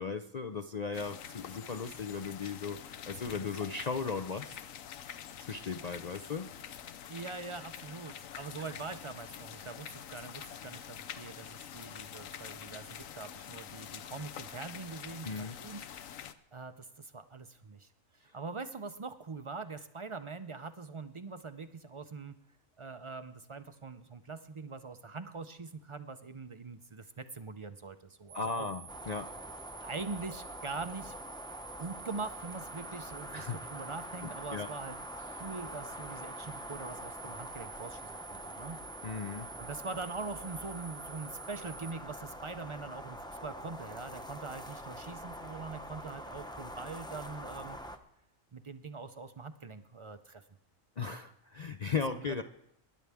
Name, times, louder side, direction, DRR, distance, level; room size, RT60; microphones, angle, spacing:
voice 1, 0.0-4.6 5.4-6.7 15.2-15.6 28.3-29.3 33.3-33.6 34.5-34.7 39.0-39.5 51.0-52.4, left 5 dB, 55° left, 8 dB, 0.4 m, -37 dB
sound 1, 0.9-16.3, left 9 dB, 75° left, 1.1 m, -46 dB
voice 2, 7.1-15.8 16.2-17.9 18.3-22.4 22.8-28.7 29.8-31.1 31.8-35.0 35.3-38.8 39.4-47.8 48.5-50.4 52.2-52.4, right 4 dB, 45° right, 10 dB, 0.4 m, -43 dB
sound 2, 28.3-41.9, right 7 dB, 75° right, 1.3 m, -50 dB
sound 3, 28.9-48.0, equal, 5° left, 0.7 m, -45 dB
24.0 x 11.0 x 3.5 m, 0.78 s
omnidirectional pair, 1.4 m